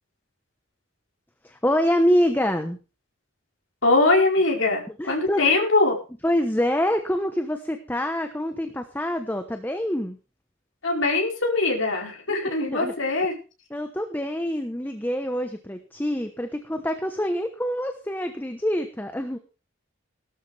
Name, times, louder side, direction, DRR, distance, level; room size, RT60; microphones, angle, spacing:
voice 1, 1.4-2.8 4.9-5.4 6.2-10.2 12.3-12.4 12.7-12.9 13.7-19.4, equal, 10° left, 7 dB, 1.0 m, -26 dB
voice 2, 3.8-6.0 10.8-13.3, left 2 dB, 80° left, 0 dB, 4.7 m, -22 dB
17.5 x 12.5 x 3.4 m, 0.33 s
head